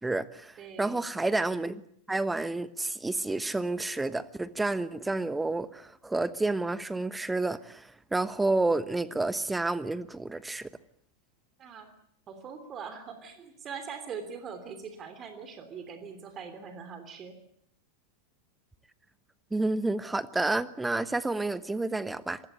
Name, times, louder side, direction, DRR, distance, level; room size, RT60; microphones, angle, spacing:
voice 1, 0.0-1.8 2.1-10.7 19.5-22.4, right 2 dB, 10° right, 1.1 m, -30 dB
voice 2, 0.6-1.0 11.6-11.9 12.3-17.4, right 6 dB, 30° right, 3.2 m, -42 dB
26.0 x 20.0 x 8.4 m
figure-of-eight pair, 90°, 0 cm